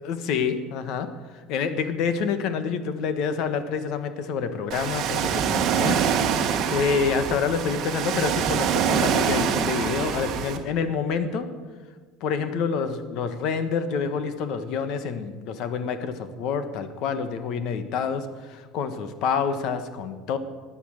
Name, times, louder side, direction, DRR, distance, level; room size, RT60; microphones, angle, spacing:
voice 1, 0.0-6.0 6.4-11.4 12.2-20.4, left 6 dB, 55° left, 10 dB, 1.3 m, -27 dB
Ocean, 4.7-10.6, right 7 dB, 45° right, 1.4 m, -25 dB
16.0 x 9.9 x 6.5 m, 1.4 s
cardioid pair, 150°, 0 cm